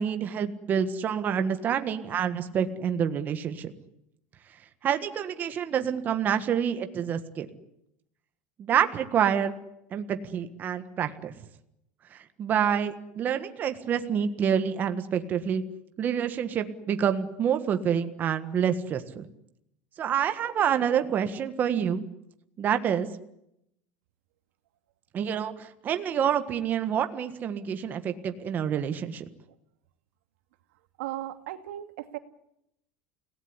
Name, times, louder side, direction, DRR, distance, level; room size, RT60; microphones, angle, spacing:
voice 1, 0.0-3.7 4.8-7.5 8.6-9.5 9.9-11.3 12.1-15.6 16.0-19.3 20.0-22.0 22.6-23.1 25.1-29.2, right 8 dB, 25° right, 8 dB, 1.5 m, -27 dB
voice 2, 31.0-32.2, right 14 dB, 90° right, 9 dB, 2.4 m, -36 dB
29.5 x 18.0 x 9.9 m, 0.81 s
cardioid pair, 165°, 7 cm